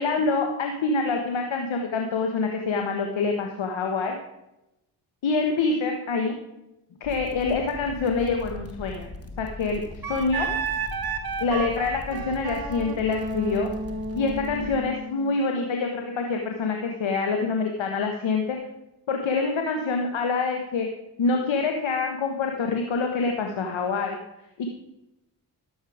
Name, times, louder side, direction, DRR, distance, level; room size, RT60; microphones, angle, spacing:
voice 1, 0.0-4.2 5.2-6.4 7.0-9.1 9.4-10.5 11.4-13.7 14.1-18.6 19.1-20.9 21.2-24.2 24.6-24.7, left 4 dB, 75° left, 3 dB, 1.4 m, -26 dB
sound 1, 7.0-14.8, left 2 dB, 30° left, 2.0 m, -40 dB
Wind instrument woodwind instrument, 10.0-15.4, right 4 dB, 50° right, 1.2 m, -32 dB
12.5 x 7.9 x 4.9 m, 0.92 s
supercardioid pair, 50°, 47 cm